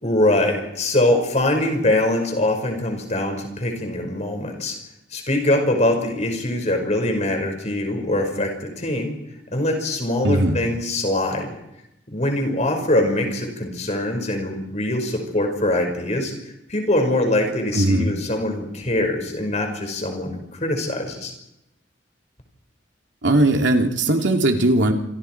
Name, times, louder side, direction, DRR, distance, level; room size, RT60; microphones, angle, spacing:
voice 1, 0.0-4.8 5.1-9.2 9.5-11.5 12.1-16.3 16.7-21.3, left 1 dB, 40° left, 4 dB, 5.4 m, -23 dB
voice 2, 10.2-10.6 17.7-18.1 23.2-24.9, right 1 dB, 75° right, 3 dB, 2.7 m, -18 dB
28.0 x 26.0 x 4.6 m, 0.87 s
head